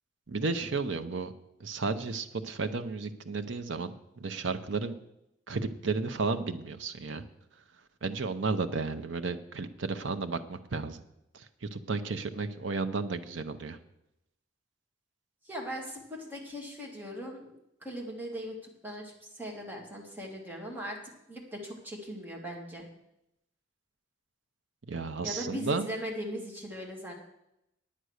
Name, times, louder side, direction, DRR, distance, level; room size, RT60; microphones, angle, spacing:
voice 1, 0.3-1.3 1.6-5.0 5.5-7.2 8.0-11.0 11.3-13.8 24.9-25.9, right 4 dB, 70° right, 9 dB, 0.7 m, -33 dB
voice 2, 15.4-17.5 17.8-21.0 21.3-22.9 25.2-27.1, equal, 10° right, -1 dB, 2.1 m, -39 dB
9.3 x 8.8 x 6.5 m, 0.84 s
head